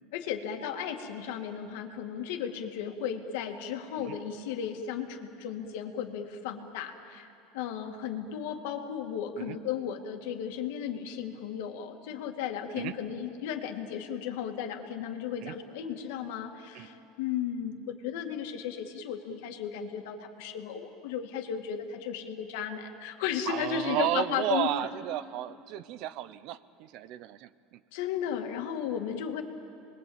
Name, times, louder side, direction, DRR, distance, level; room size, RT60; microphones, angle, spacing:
voice 1, 0.1-24.7 27.9-29.4, left 8 dB, 75° left, 4 dB, 2.3 m, -35 dB
voice 2, 23.5-27.8, right 13 dB, 50° right, 15 dB, 0.7 m, -33 dB
29.0 x 22.0 x 8.8 m, 2.6 s
cardioid pair, 170°, 0 cm